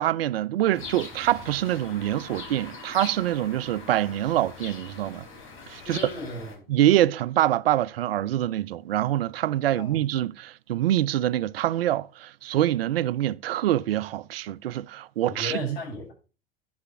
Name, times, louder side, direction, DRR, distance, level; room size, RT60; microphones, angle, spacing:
voice 1, 0.0-5.3 5.7-6.0 6.7-15.7, right 13 dB, 75° right, 0.5 m, -25 dB
sound 1, 0.7-6.6, left 4 dB, 45° left, 5.2 m, -42 dB
voice 2, 5.8-6.7 9.6-10.0 15.2-16.1, left 2 dB, 75° left, 6.6 m, -36 dB
10.5 x 6.7 x 5.7 m
figure-of-eight pair, 75°, 30 cm